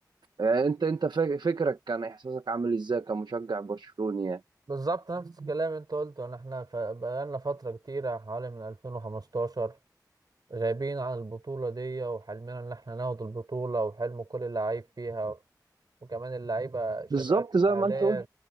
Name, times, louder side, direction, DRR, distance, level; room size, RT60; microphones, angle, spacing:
voice 1, 0.4-4.4 5.4-5.5 17.1-18.2, right 4 dB, 85° right, 1.0 m, -28 dB
voice 2, 4.7-9.8 10.5-15.4 16.1-18.3, right 3 dB, 65° right, 3.9 m, -33 dB
wide cardioid pair, 40°, 7 cm